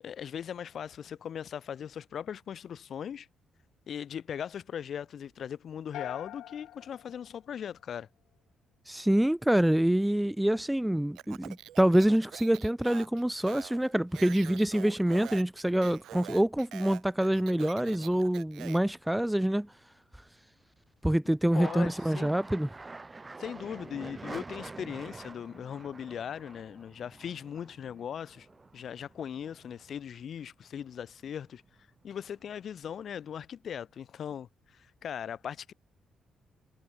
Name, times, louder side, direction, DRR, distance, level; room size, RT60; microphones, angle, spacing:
voice 1, 0.0-3.3 3.9-8.1 21.5-22.3 23.4-28.5 28.7-31.6 32.0-35.7, left 8 dB, 60° left, 0.9 m, -39 dB
sound 1, 5.9-8.2, left 13 dB, 85° left, 2.5 m, -45 dB
voice 2, 8.9-19.7 21.0-22.7, right 1 dB, 5° right, 0.4 m, -26 dB
Speech, 11.1-18.9, right 13 dB, 80° right, 3.0 m, -46 dB
sound 2, 21.5-30.2 30.6-31.4 31.7-32.6, right 3 dB, 20° right, 5.3 m, -47 dB
cardioid pair, 90°, 0 cm